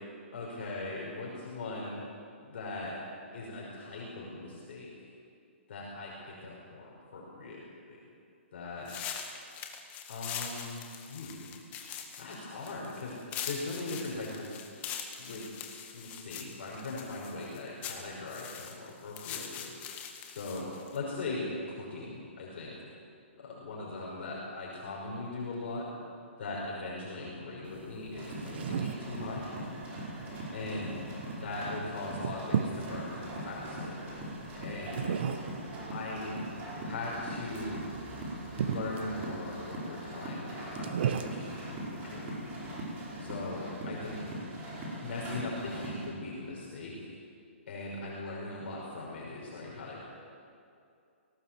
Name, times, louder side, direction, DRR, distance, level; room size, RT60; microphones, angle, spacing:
voice 1, 0.3-2.0 2.4-3.0 3.3-4.9 5.7-7.6 7.9-8.0 8.5-8.9 10.1-11.5 12.2-14.5 15.2-15.5 15.9-19.7 20.3-22.8 23.4-25.9 26.4-29.4 30.5-31.0 31.4-34.0 34.6-35.1 35.9-36.3 36.8-37.8 38.6-42.6 43.2-44.2 45.0-46.9 47.7-50.0, left 2 dB, 55° left, -4 dB, 5.7 m, -40 dB
sound 1, 8.9-21.0, left 8 dB, 20° left, 1.8 m, -42 dB
sound 2, 27.6-43.5, right 7 dB, 55° right, 1.4 m, -38 dB
sound 3, 28.1-46.1, right 1 dB, 20° right, 5.2 m, -41 dB
18.5 x 18.5 x 7.8 m, 2.5 s
hypercardioid pair, 155°, 7 cm